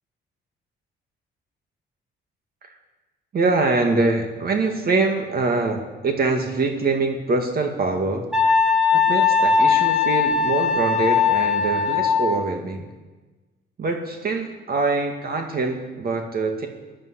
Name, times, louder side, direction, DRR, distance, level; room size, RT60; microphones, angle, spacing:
voice 1, 3.3-8.3 8.9-12.9 13.8-16.7, right 3 dB, 50° right, 4 dB, 2.1 m, -24 dB
Wind instrument woodwind instrument, 8.3-12.4, left 5 dB, 5° right, 3.7 m, -19 dB
14.5 x 11.0 x 8.2 m, 1.2 s
cardioid pair, 90°, 20 cm